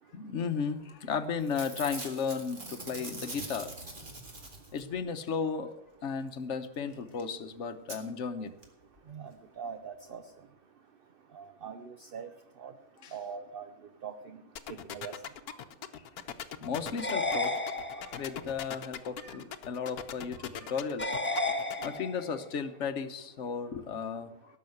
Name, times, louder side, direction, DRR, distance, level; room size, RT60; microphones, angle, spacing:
voice 1, 0.1-3.8 4.7-5.7 6.0-8.5 13.0-13.1 16.6-17.5 18.2-21.2 21.8-24.6, left 6 dB, 55° left, 10 dB, 1.2 m, -34 dB
Packing tape duct tape / Tearing, 0.9-1.1 1.4-5.0 6.9-7.0 7.2-7.3 7.9-8.0 8.6-8.7 8.9-9.0, right 2 dB, 35° right, 2.2 m, -43 dB
voice 2, 9.6-10.2 11.3-12.3 12.6-12.7 13.1-13.7 14.0-14.4 14.9-15.1 19.2-19.4 20.6-20.7, right 6 dB, 50° right, 8 dB, 0.7 m, -42 dB
sound 1, 14.6-21.9, left 9 dB, 80° left, 1.3 m, -40 dB
sound 2, 17.0-18.4 21.0-22.4, left 2 dB, 10° left, 0.7 m, -32 dB
17.5 x 6.5 x 7.8 m, 0.85 s
omnidirectional pair, 1.6 m